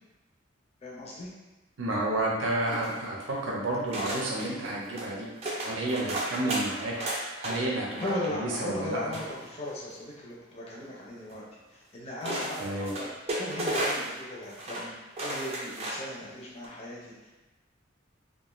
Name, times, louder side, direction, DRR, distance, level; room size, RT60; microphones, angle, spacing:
voice 1, 0.8-1.3 8.0-13.1 13.4-14.9 15.2-17.3, left 1 dB, 35° left, -5 dB, 0.4 m, -37 dB
voice 2, 1.8-5.3 5.6-6.9 7.4-9.0 12.6-12.9, right 1 dB, 85° right, -3 dB, 0.6 m, -30 dB
sound 1, 2.7-3.3 3.9-4.5 4.9-5.1 5.4-7.5 7.9-8.3 9.1-9.9 11.3-11.4 12.2-14.2 14.5-14.9 15.1-16.1 16.5-16.7, right 1 dB, 35° right, 0.4 m, -34 dB
2.4 x 2.2 x 2.9 m, 1.1 s
head